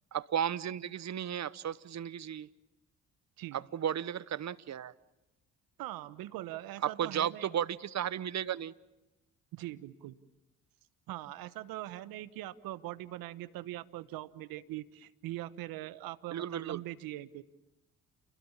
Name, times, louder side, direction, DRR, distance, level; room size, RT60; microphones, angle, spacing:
voice 1, 0.1-2.5 3.5-4.9 6.8-8.7 16.3-16.8, right 9 dB, 50° right, 19 dB, 1.0 m, -34 dB
voice 2, 5.8-7.5 9.5-10.2 11.1-17.4, right 15 dB, 75° right, 16 dB, 1.2 m, -42 dB
29.5 x 21.5 x 7.3 m, 0.97 s
hypercardioid pair, 55°, 35 cm